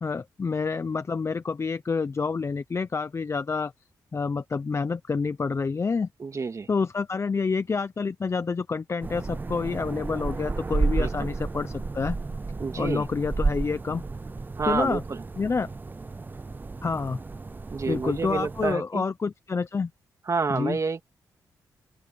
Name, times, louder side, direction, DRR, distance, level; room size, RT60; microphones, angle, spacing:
voice 1, 0.0-3.7 4.1-6.1 6.7-12.2 12.8-14.0 14.7-15.0 15.4-15.7 16.8-17.2 17.9-19.9 20.5-20.8, left 4 dB, 40° left, 0.7 m, -28 dB
voice 2, 6.2-6.7 11.0-11.3 12.6-13.1 14.6-15.2 17.7-19.0 20.3-21.0, right 4 dB, 45° right, 2.2 m, -29 dB
sound 1, 9.0-18.7, right 3 dB, 25° right, 0.5 m, -32 dB
open air
cardioid pair, 65°, 7 cm